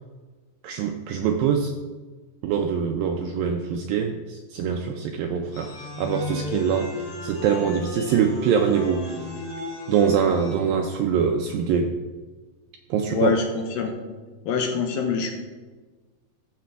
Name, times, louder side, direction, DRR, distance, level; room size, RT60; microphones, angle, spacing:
voice 1, 0.6-1.7 2.4-6.9 7.2-9.2 9.9-11.9 12.9-13.4, right 7 dB, 80° right, 4 dB, 2.0 m, -24 dB
sound 1, 5.5-10.5, left 1 dB, 45° left, 2.7 m, -34 dB
voice 2, 13.1-14.0 14.5-15.3, left 5 dB, 75° left, 3 dB, 2.3 m, -25 dB
13.5 x 6.7 x 3.5 m, 1.3 s
omnidirectional pair, 4.6 m